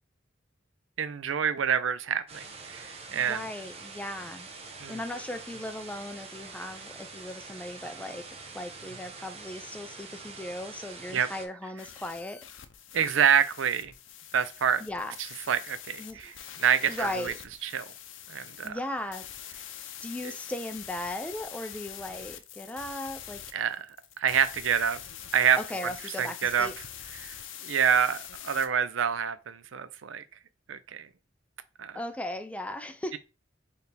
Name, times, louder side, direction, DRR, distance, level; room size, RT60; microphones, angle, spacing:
voice 1, 1.0-3.4 4.8-5.0 11.1-11.3 12.9-13.9 14.3-14.8 15.5-16.3 16.6-17.3 17.6-17.8 18.3-18.8 23.5-23.9 24.2-25.0 25.3-25.9 26.2-26.7 27.2-27.3 27.6-28.2 28.4-30.2 30.7-31.1 31.8-32.0, right 8 dB, 85° right, 0.5 m, -27 dB
sound 1, 2.3-11.5, right 4 dB, 35° right, 0.8 m, -45 dB
voice 2, 3.1-4.5 4.9-12.4 14.8-15.1 16.0-16.3 16.9-17.3 18.6-19.3 20.0-23.4 25.6-26.7 31.9-33.2, left 1 dB, 5° left, 0.5 m, -37 dB
sound 2, 11.8-28.7, left 10 dB, 75° left, 0.6 m, -44 dB
4.6 x 3.4 x 3.3 m
head